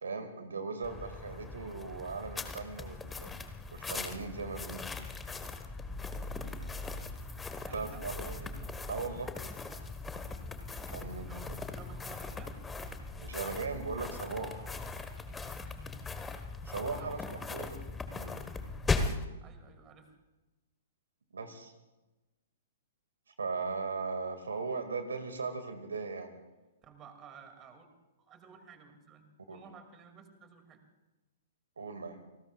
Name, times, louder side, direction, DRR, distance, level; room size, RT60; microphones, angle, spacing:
voice 1, 0.0-3.3 3.7-4.8 7.7-8.5 8.9-9.3 10.9-11.4 13.2-14.7 16.6-17.2 17.5-17.8 18.1-18.4 21.3-21.7 23.4-26.3 29.5-29.6 31.8-32.2, right 4 dB, 70° right, 8 dB, 2.2 m, -38 dB
sound 1, 0.8-19.2, left 3 dB, 10° left, 1.3 m, -39 dB
voice 2, 7.6-8.1 11.2-12.6 17.0-17.7 19.4-20.2 26.8-27.9 28.2-30.8, right 6 dB, 25° right, 7 dB, 2.5 m, -53 dB
30.0 x 19.0 x 2.4 m, 1.1 s
figure-of-eight pair, 115°, 0 cm